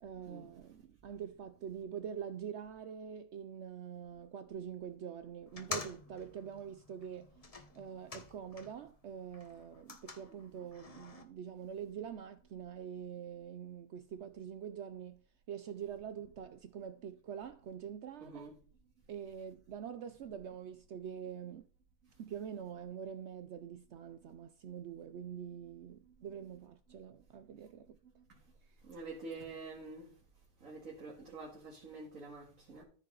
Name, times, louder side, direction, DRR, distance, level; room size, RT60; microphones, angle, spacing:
voice 1, 0.0-7.3 7.7-15.2 15.5-18.5 19.1-21.7 22.2-28.0, right 8 dB, 90° right, 0.6 m, -45 dB
sound 1, 5.5-8.9 9.2-11.2, left 3 dB, 25° left, 0.9 m, -47 dB
voice 2, 18.2-18.5 28.9-30.1 30.6-32.8, right 3 dB, 50° right, 2.3 m, -47 dB
13.5 x 5.5 x 3.9 m
omnidirectional pair, 1.8 m